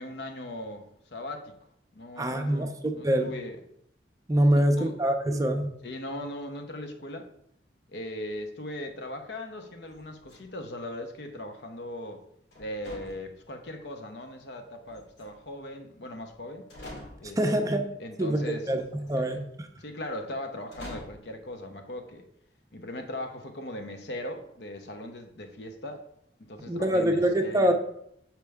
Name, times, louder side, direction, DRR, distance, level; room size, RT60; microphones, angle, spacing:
voice 1, 0.0-1.5 1.9-3.6 4.5-5.0 5.8-7.3 7.9-12.2 12.6-16.7 17.2-17.4 17.7-18.7 19.1-19.4 19.8-22.2 22.7-26.0 26.4-27.7, left 1 dB, 70° left, 5 dB, 0.8 m, -39 dB
voice 2, 2.2-3.3 4.3-5.7 17.4-17.8 18.2-19.7 26.7-27.7, right 1 dB, 20° right, 5 dB, 0.5 m, -25 dB
sound 1, 9.9-10.7 12.5-13.8 14.8-15.6 16.3-16.4 16.7-17.5 18.8-19.3 20.7-21.3, left 1 dB, 85° left, 2.5 m, -46 dB
6.6 x 4.5 x 3.5 m, 0.74 s
head